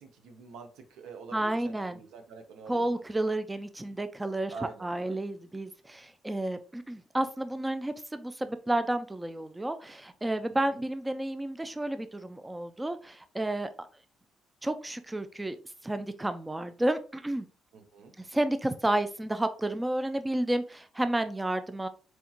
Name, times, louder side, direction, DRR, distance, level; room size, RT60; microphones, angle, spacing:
voice 1, 0.0-3.0 4.5-5.2 10.6-10.8 17.7-18.1, right 5 dB, 85° right, 5 dB, 0.7 m, -46 dB
voice 2, 1.3-2.0 2.7-4.5 4.8-13.9 14.6-15.6 15.8-17.5 18.2-21.9, right 1 dB, 15° right, 10 dB, 0.3 m, -31 dB
4.3 x 2.3 x 2.8 m, 0.38 s
cardioid pair, 90°, 0 cm